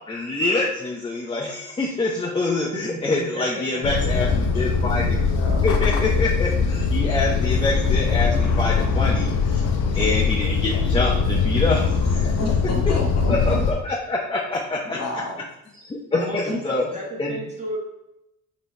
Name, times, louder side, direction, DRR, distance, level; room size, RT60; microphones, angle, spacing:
voice 1, 0.1-5.2 5.6-9.7 9.9-12.3 13.3-15.0 15.8-16.8 17.2-17.4, left 2 dB, 20° left, -2 dB, 0.6 m, -26 dB
voice 2, 2.7-3.4 3.7-3.8 16.1-17.8, equal, 20° right, -3 dB, 1.3 m, -33 dB
sound 1, 3.8-13.7, left 5 dB, 75° left, 0.6 m, -21 dB
voice 3, 4.0-4.5 5.3-5.7 12.4-13.6 14.8-15.4 16.5-16.6, left 2 dB, 55° left, -1 dB, 1.1 m, -31 dB
4.0 x 2.9 x 3.2 m, 0.86 s
cardioid pair, 90°, 30 cm